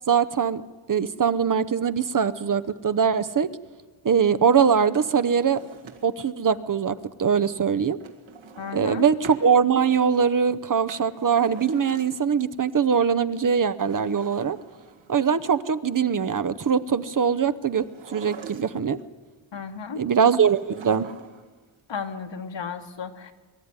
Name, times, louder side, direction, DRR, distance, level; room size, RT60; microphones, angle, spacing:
voice 1, 0.1-0.6 0.9-3.5 4.0-5.6 6.0-8.0 8.7-14.6 15.1-19.0 20.0-21.1, right 7 dB, 40° right, 13 dB, 0.8 m, -22 dB
Drawer open or close, 4.9-6.3 8.0-9.5 10.6-12.4 13.7-15.3 17.8-19.0 20.4-21.6 21.8-21.9, right 6 dB, 75° right, 1.9 m, -45 dB
voice 2, 8.6-9.1 19.5-20.0 21.9-23.3, left 6 dB, 65° left, 6 dB, 1.7 m, -34 dB
23.0 x 12.5 x 9.7 m, 1.3 s
wide cardioid pair, 90°, 47 cm